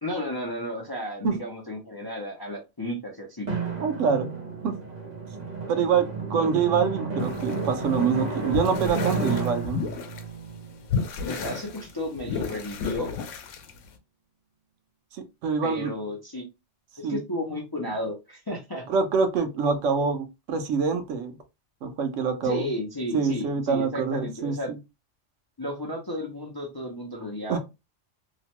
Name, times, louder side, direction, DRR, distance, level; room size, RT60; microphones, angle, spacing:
voice 1, 0.0-3.5 6.3-6.5 11.2-13.1 15.6-16.4 17.0-18.9 22.4-24.7 25.6-27.6, left 1 dB, 30° left, 0.4 m, -33 dB
Drum, 3.5-11.8, right 4 dB, 40° right, 0.7 m, -32 dB
voice 2, 3.8-4.3 4.6-4.8 5.7-9.8 15.1-15.9 17.0-17.2 18.9-21.3 21.8-22.7 23.1-24.8 27.5-27.6, right 5 dB, 85° right, 1.0 m, -25 dB
sound 1, 7.2-10.3 10.6-14.0, left 6 dB, 85° left, 0.9 m, -33 dB
2.9 x 2.1 x 2.8 m
omnidirectional pair, 1.3 m